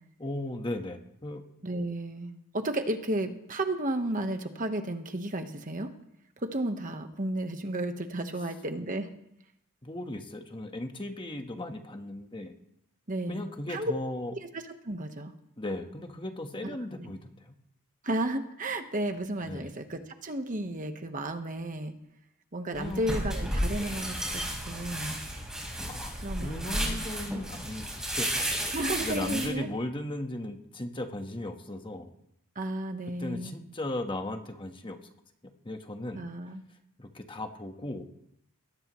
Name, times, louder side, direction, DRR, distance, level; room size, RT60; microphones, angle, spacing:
voice 1, 0.2-1.4 9.8-12.5 13.3-14.3 15.6-17.5 19.4-19.7 22.7-23.2 25.9-28.3 28.7-32.1 33.2-35.0 35.4-36.3 37.0-38.1, left 1 dB, 20° left, 5 dB, 1.3 m, -37 dB
voice 2, 1.6-5.9 6.4-9.1 13.1-13.9 14.3-15.3 16.6-17.1 18.0-21.9 22.5-25.2 26.2-27.0 27.3-27.4 28.7-29.7 32.5-33.6 36.1-36.6, right 1 dB, 35° right, 6 dB, 1.2 m, -33 dB
sound 1, 22.7-29.5, equal, 5° right, 4.6 m, -33 dB
22.5 x 18.0 x 3.1 m, 0.76 s
head